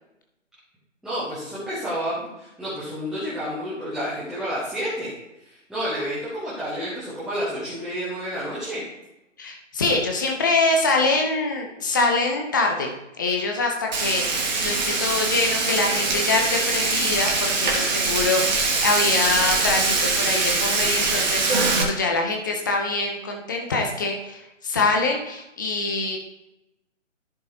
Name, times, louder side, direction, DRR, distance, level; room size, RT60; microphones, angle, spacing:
voice 1, 1.0-5.1 5.4-8.8, equal, ahead, -12 dB, 1.3 m, -30 dB
voice 2, 9.4-12.9 13.2-26.2, left 3 dB, 15° left, 2 dB, 0.7 m, -24 dB
Frying (food), 13.9-21.8, right 3 dB, 35° right, 1.8 m, -23 dB
14.0 x 5.2 x 2.9 m, 0.91 s
figure-of-eight pair, 145°, 38 cm